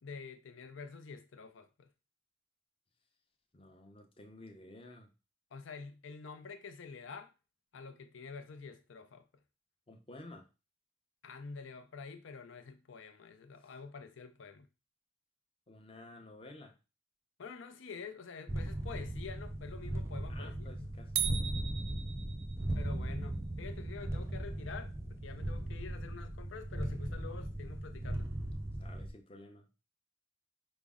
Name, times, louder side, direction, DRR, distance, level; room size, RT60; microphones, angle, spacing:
voice 1, 0.0-1.9 5.5-7.3 7.7-9.2 11.2-14.7 17.4-20.9 22.7-28.3, left 5 dB, 80° left, 0.5 m, -47 dB
voice 2, 3.5-5.1 9.9-10.5 13.6-13.7 15.7-16.7 20.3-21.4 28.8-29.7, left 2 dB, 30° left, 0.6 m, -53 dB
sound 1, 18.5-29.1, right 1 dB, 15° right, 0.4 m, -38 dB
sound 2, 21.2-22.7, right 10 dB, 90° right, 0.5 m, -37 dB
5.1 x 2.0 x 3.5 m
head